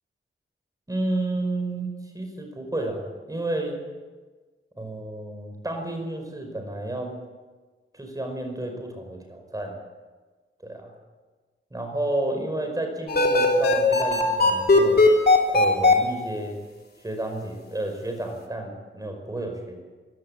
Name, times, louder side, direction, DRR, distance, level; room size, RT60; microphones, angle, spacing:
voice 1, 0.9-3.8 4.8-7.2 7.9-9.8 10.6-10.9 11.7-15.0 15.5-16.6 17.0-19.8, right 1 dB, 15° right, 4 dB, 5.4 m, -31 dB
sound 1, 13.1-15.9, left 2 dB, 50° left, 3.4 m, -18 dB
22.5 x 16.5 x 8.9 m, 1.3 s
wide cardioid pair, 140°, 21 cm